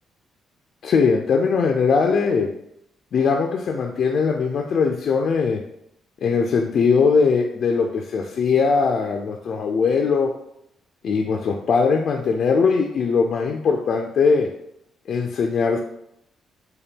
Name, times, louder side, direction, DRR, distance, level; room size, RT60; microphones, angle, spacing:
voice 1, 0.8-2.5 3.1-5.6 6.2-10.3 11.0-14.5 15.1-15.8, left 5 dB, 60° left, 3 dB, 0.3 m, -20 dB
4.1 x 2.2 x 3.4 m, 0.77 s
cardioid pair, 90°, 0 cm